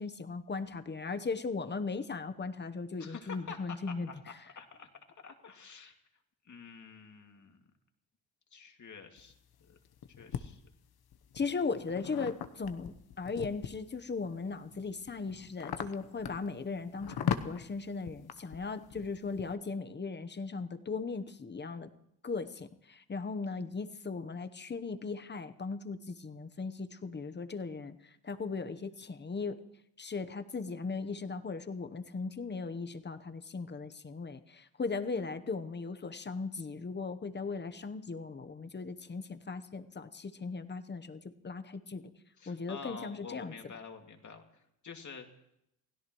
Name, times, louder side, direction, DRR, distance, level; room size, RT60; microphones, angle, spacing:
voice 1, 0.0-4.1 11.3-21.9 22.2-28.0 28.2-29.6 30.0-42.1 42.5-43.7, left 4 dB, 25° left, 10 dB, 1.0 m, -38 dB
voice 2, 3.0-4.9 5.2-6.0 6.5-7.6 8.5-9.3 9.7-9.8 10.2-10.6 42.4-44.4 44.8-45.3, left 5 dB, 45° left, 3 dB, 2.2 m, -48 dB
sound 1, 9.2-10.4 11.1-14.0 14.5-19.5, left 8 dB, 60° left, 1.0 m, -39 dB
28.5 x 16.5 x 3.1 m, 0.78 s
cardioid pair, 105°, 42 cm